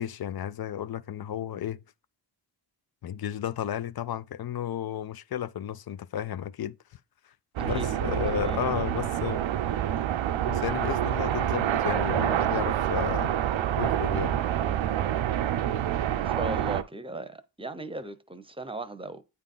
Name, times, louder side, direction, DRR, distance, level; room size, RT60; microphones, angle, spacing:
voice 1, 0.0-1.8 3.0-6.8 7.6-9.5 10.5-13.3 13.8-14.4, left 10 dB, 55° left, 0.5 m, -33 dB
sound 1, 7.6-16.8, right 11 dB, 85° right, 0.6 m, -27 dB
voice 2, 8.3-8.6 16.2-19.2, right 2 dB, 10° right, 0.8 m, -37 dB
9.0 x 3.5 x 3.8 m
cardioid pair, 70°, 46 cm